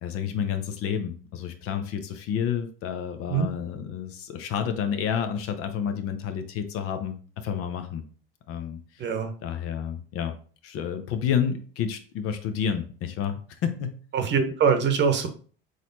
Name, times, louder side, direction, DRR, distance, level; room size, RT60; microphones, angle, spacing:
voice 1, 0.0-8.0 8.5-9.0 9.4-10.3 10.6-14.0, left 8 dB, 50° left, 8 dB, 0.8 m, -30 dB
voice 2, 9.0-9.3 14.1-15.3, right 6 dB, 40° right, 7 dB, 0.9 m, -23 dB
4.0 x 3.2 x 3.9 m, 0.41 s
hypercardioid pair, 80°, 29 cm